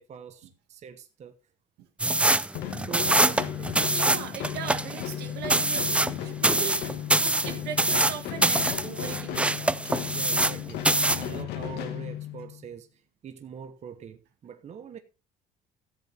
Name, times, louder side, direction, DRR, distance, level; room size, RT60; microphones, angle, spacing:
voice 1, 0.0-1.4 2.9-3.8 10.1-15.0, right 7 dB, 40° right, 0.9 m, -43 dB
sound 1, 2.0-10.6 10.8-11.3, right 2 dB, 5° right, 0.4 m, -24 dB
sound 2, 2.5-12.7, left 12 dB, 80° left, 1.4 m, -36 dB
voice 2, 3.9-9.8, right 9 dB, 80° right, 1.6 m, -39 dB
14.0 x 7.9 x 3.3 m
supercardioid pair, 90°, 17 cm